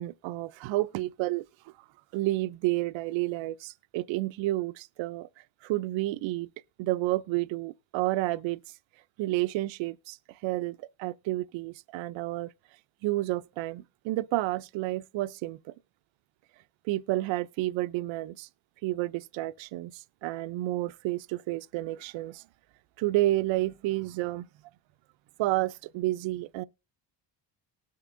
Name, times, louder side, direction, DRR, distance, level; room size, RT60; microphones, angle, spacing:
voice 1, 0.0-1.7 2.1-5.3 5.6-6.5 6.8-8.6 9.2-12.5 13.0-15.7 16.8-18.5 18.8-22.4 23.0-24.5 25.4-26.6, right 17 dB, 85° right, 0.5 m, -30 dB
19.0 x 6.6 x 2.5 m
cardioid pair, 140°, 44 cm